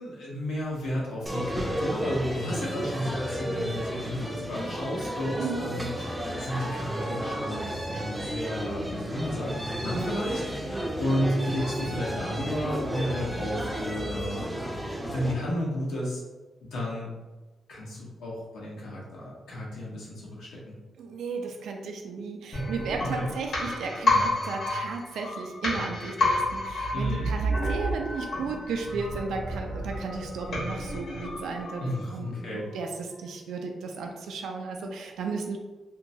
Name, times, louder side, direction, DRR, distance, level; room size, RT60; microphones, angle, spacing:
voice 1, 0.0-14.5 15.0-16.2 16.6-17.1 17.7-20.8 23.0-23.3 26.9-27.3 31.8-32.7, left 1 dB, 90° left, -5 dB, 0.9 m, -32 dB
sound 1, 1.3-15.3, right 1 dB, 10° right, 0.4 m, -33 dB
voice 2, 5.4-5.7 21.0-35.6, right 4 dB, 90° right, 3 dB, 0.4 m, -34 dB
sound 2, 22.5-32.2 32.5-32.6, left 1 dB, 65° left, 1.2 m, -30 dB
2.8 x 2.2 x 2.6 m, 1.2 s
cardioid pair, 95°, 0 cm